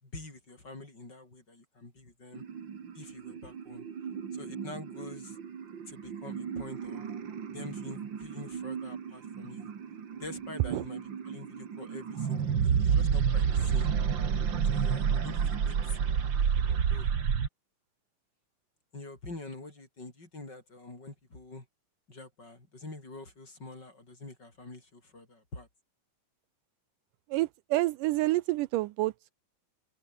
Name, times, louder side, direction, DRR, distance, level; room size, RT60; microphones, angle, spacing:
voice 1, 0.0-2.4 2.9-3.9 4.3-5.4 5.9-7.1 7.5-9.7 10.1-13.9 14.6-16.0 16.7-17.1 18.9-21.7 22.1-25.7, left 2 dB, 30° left, 6.6 m, -46 dB
sound 1, 2.3-17.5, right 7 dB, 40° right, 2.0 m, -31 dB
voice 2, 27.3-29.1, right 18 dB, 80° right, 2.2 m, -28 dB
open air
omnidirectional pair, 3.9 m